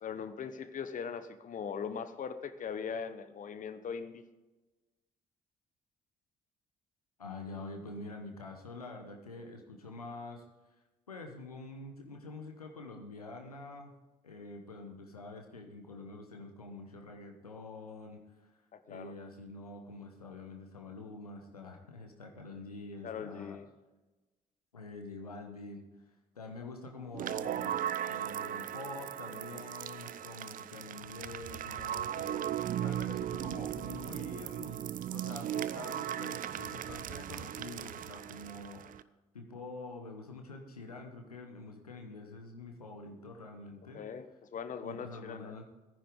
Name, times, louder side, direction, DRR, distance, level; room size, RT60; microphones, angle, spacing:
voice 1, 0.0-4.2 18.7-19.1 23.0-23.7 43.9-45.5, left 6 dB, 45° left, 11 dB, 1.0 m, -40 dB
voice 2, 7.2-10.4 11.1-13.9 14.2-18.5 18.9-23.6 24.7-25.9 26.3-27.8 28.1-32.4 32.8-39.0 39.3-44.0 44.8-45.6, left 3 dB, 90° left, 4 dB, 0.9 m, -46 dB
sound 1, 27.1-39.0, right 11 dB, 45° right, 0.5 m, -37 dB
15.0 x 9.9 x 3.7 m, 1.1 s
figure-of-eight pair, 40°, 19 cm